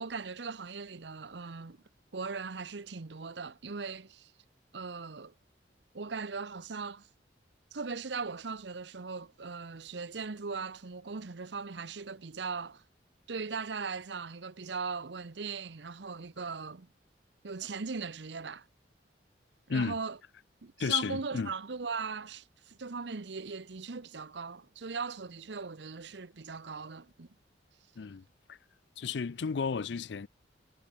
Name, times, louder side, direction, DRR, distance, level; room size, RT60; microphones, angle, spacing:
voice 1, 0.0-1.8 2.1-4.3 4.7-5.3 5.9-7.1 7.7-12.8 13.3-16.9 17.4-18.7 19.7-20.2 20.6-27.3, right 4 dB, 70° right, 0.8 m, -39 dB
voice 2, 20.8-21.5 28.0-28.6 29.0-30.3, left 6 dB, 70° left, 0.5 m, -33 dB
head